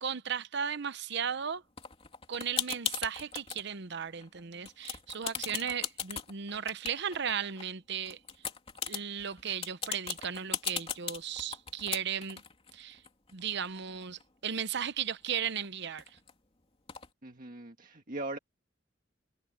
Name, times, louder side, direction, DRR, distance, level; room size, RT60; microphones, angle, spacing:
voice 1, 0.0-1.6 2.3-8.2 8.9-12.4 12.7-13.0 13.3-16.2, right 7 dB, 60° right, 0.8 m, -36 dB
sound 1, 1.8-3.6 4.1-4.4 4.6-7.6 8.1-14.2 14.6-14.7 14.8-16.3 16.9-17.1, left 7 dB, 30° left, 2.9 m, -38 dB
voice 2, 17.2-18.4, right 2 dB, 45° right, 1.7 m, -40 dB
head